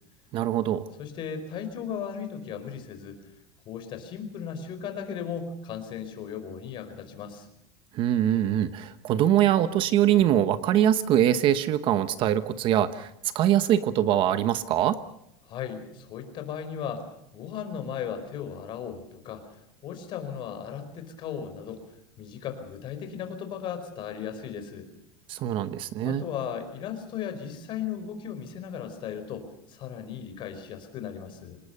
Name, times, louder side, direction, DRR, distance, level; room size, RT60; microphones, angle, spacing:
voice 1, 0.3-0.9 7.9-13.1 13.3-15.0 25.3-26.2, right 11 dB, 40° right, 12 dB, 1.1 m, -23 dB
voice 2, 1.0-3.2 3.6-7.5 15.4-17.1 17.3-21.8 22.2-24.9 26.0-31.6, left 8 dB, 40° left, 8 dB, 4.8 m, -36 dB
27.0 x 19.5 x 6.7 m, 0.79 s
supercardioid pair, 155°, 13 cm